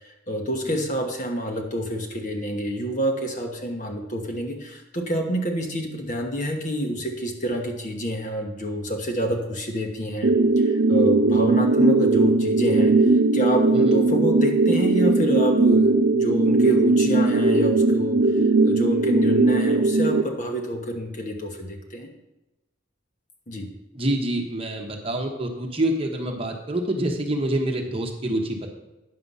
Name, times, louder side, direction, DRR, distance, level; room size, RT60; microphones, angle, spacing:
voice 1, 0.3-12.9 13.3-18.2 18.6-22.1 23.5-23.7, equal, 40° left, 2 dB, 1.3 m, -28 dB
sound 1, 10.2-20.2, right 2 dB, 55° right, 0.6 m, -19 dB
voice 2, 23.9-28.7, right 1 dB, 30° right, 2 dB, 1.1 m, -27 dB
9.7 x 6.8 x 5.6 m, 0.99 s
head